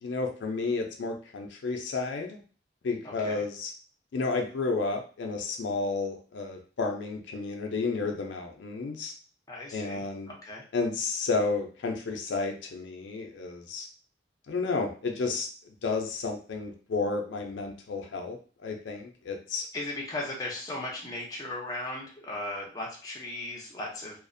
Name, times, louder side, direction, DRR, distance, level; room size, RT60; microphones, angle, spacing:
voice 1, 0.0-2.4 2.8-3.7 4.1-9.1 9.7-10.3 10.7-13.9 14.5-15.5 15.8-19.7, left 3 dB, 80° left, 3 dB, 0.4 m, -31 dB
voice 2, 3.0-3.4 9.5-10.6 19.7-24.2, left 2 dB, 20° left, -3 dB, 0.5 m, -37 dB
2.4 x 2.0 x 2.5 m, 0.39 s
head